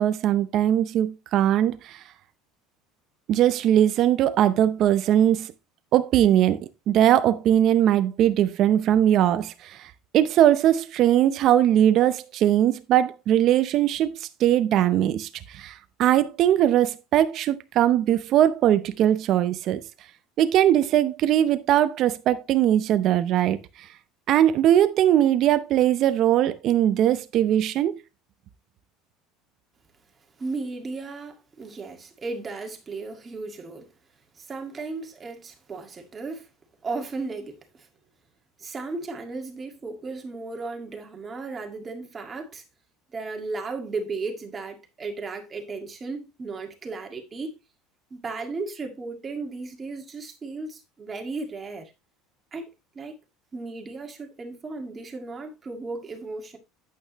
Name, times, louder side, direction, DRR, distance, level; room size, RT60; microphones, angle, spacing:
voice 1, 0.0-2.0 3.3-5.5 5.9-19.8 20.4-23.9 24.3-28.0, right 11 dB, 45° right, 0.6 m, -20 dB
voice 2, 30.4-33.9 34.4-36.5 36.8-37.9 38.6-42.6 43.1-47.5 48.1-51.9 52.5-52.7 52.9-53.2 53.5-56.6, right 3 dB, 20° right, 1.9 m, -35 dB
8.9 x 8.7 x 3.0 m
cardioid pair, 145°, 0 cm